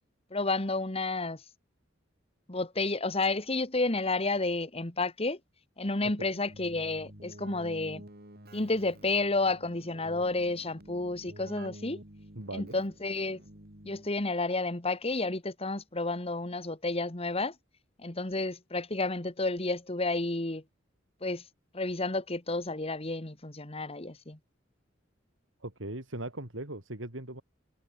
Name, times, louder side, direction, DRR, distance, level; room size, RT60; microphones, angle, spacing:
voice 1, 0.3-1.4 2.5-5.4 5.8-8.0 8.5-12.0 12.5-13.4 13.8-17.5 18.0-20.6 21.2-21.4 21.7-24.4, left 2 dB, 30° left, 1.7 m, -31 dB
Keyboard (musical), 6.5-14.3, right 1 dB, 55° right, 5.6 m, -50 dB
voice 2, 12.4-12.8 25.6-27.4, right 1 dB, 80° right, 4.1 m, -39 dB
head